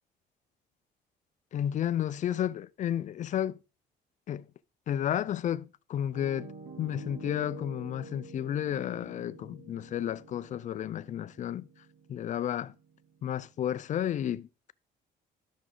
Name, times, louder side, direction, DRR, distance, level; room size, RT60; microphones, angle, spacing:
voice 1, 1.5-3.6 4.3-4.4 4.9-6.5 6.8-11.7 12.1-12.7 13.2-14.7, left 10 dB, 45° left, 0.5 m, -32 dB
Piano, 6.1-14.0, right 2 dB, 85° right, 2.1 m, -48 dB
12.0 x 6.2 x 3.9 m
cardioid pair, 110°, 17 cm